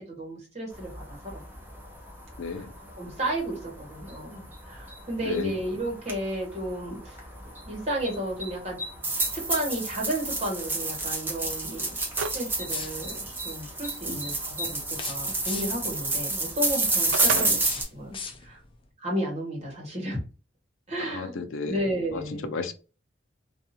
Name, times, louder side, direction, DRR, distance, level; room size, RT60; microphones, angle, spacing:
voice 1, 0.0-1.4 2.6-2.7 3.0-7.2 7.7-8.8 9.3-11.8 12.3-17.6 17.9-18.6 19.0-20.2 20.9-21.4 21.7-22.5, right 1 dB, 35° right, 1.1 m, -33 dB
sound 1, 0.7-17.8, right 2 dB, 10° right, 0.6 m, -31 dB
sound 2, 12.2-12.5 12.9-13.0 16.7-17.5, right 6 dB, 85° right, 0.3 m, -30 dB
sound 3, 12.6-13.3 14.9-15.9 16.9-18.8, left 5 dB, 25° left, 0.4 m, -39 dB
voice 2, 21.0-21.8 22.1-22.2 22.5-22.7, left 4 dB, 85° left, 0.5 m, -33 dB
2.6 x 2.3 x 2.8 m
head